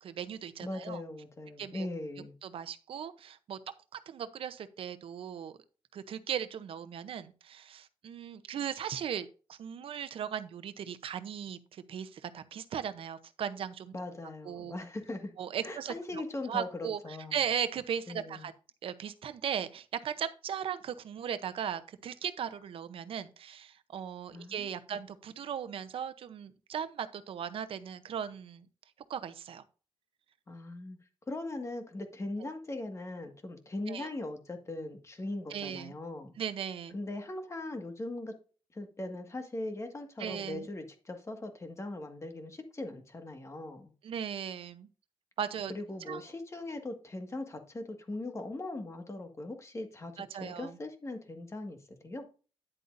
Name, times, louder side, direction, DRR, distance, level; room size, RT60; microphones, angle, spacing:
voice 1, 0.0-1.0 1.6-1.9 2.4-3.6 3.9-5.6 5.9-13.9 14.4-14.8 15.4-15.9 16.5-18.5 18.8-28.7 29.1-29.6 32.4-32.5 33.9-34.1 35.5-35.9 36.4-36.9 40.2-40.7 44.0-44.9 45.4-45.7 46.1-46.2 50.2-50.7, right 8 dB, 90° right, 0.7 m, -37 dB
voice 2, 0.6-2.3 13.9-15.3 15.6-17.4 18.1-18.5 24.3-25.0 30.5-31.0 31.3-36.3 36.9-38.3 38.7-43.9 45.7-52.3, left 2 dB, 30° left, 1.7 m, -40 dB
10.0 x 8.0 x 2.6 m
cardioid pair, 95°, 9 cm